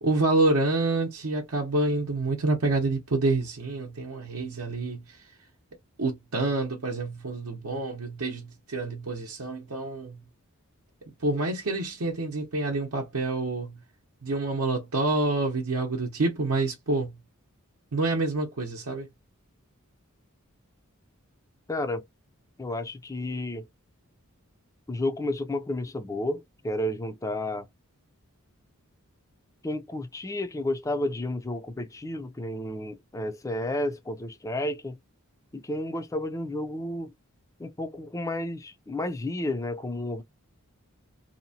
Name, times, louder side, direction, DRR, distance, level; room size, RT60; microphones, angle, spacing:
voice 1, 0.0-5.0 6.0-10.2 11.2-13.8 14.2-17.1 17.9-19.1, right 2 dB, 65° right, 0.7 m, -27 dB
voice 2, 21.7-22.0 22.6-23.6 24.9-27.7 29.6-35.0 35.5-37.1 37.6-40.2, left 1 dB, 15° left, 0.4 m, -31 dB
2.8 x 2.0 x 2.7 m
head